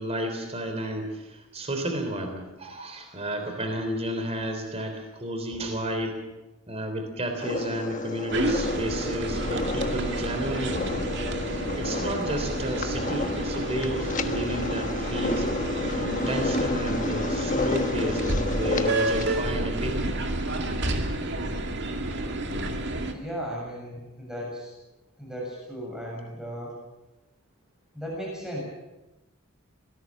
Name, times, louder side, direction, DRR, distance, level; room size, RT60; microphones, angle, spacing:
voice 1, 0.0-6.2 6.7-11.1 11.8-15.5 16.0-18.2 18.5-20.1, right 1 dB, 30° right, 5 dB, 3.5 m, -32 dB
sound 1, 7.4-19.4, left 2 dB, 35° left, 1.2 m, -31 dB
sound 2, 8.3-23.1, right 1 dB, 55° right, 2.3 m, -30 dB
voice 2, 23.1-24.7 25.2-26.8 27.9-28.6, equal, 5° right, -3 dB, 7.0 m, -36 dB
24.5 x 18.0 x 7.4 m, 1.0 s
head